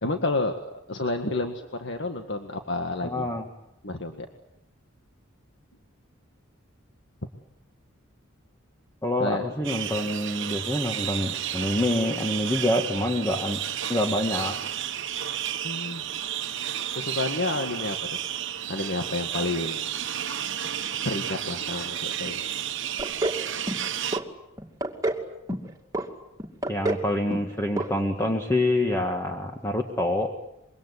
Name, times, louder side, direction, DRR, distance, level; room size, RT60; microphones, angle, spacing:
voice 1, 0.0-0.5 0.9-3.3 3.8-4.3 9.2-9.5 15.6-16.0 17.0-18.0 18.7-19.8 21.1-22.4, left 2 dB, 60° left, 5 dB, 1.8 m, -30 dB
voice 2, 3.0-3.5 9.0-13.6 13.9-14.6 26.7-30.3, left 1 dB, 15° left, 2 dB, 1.9 m, -26 dB
sound 1, 9.6-24.2, right 10 dB, 60° right, 1.3 m, -32 dB
sound 2, 23.0-23.4 23.7-24.2 24.6-25.2 25.5-26.1 26.4-27.1 27.3-27.5 27.8-27.9 28.2-28.3, right 2 dB, 15° right, 2.5 m, -28 dB
26.0 x 23.5 x 8.3 m, 0.82 s
head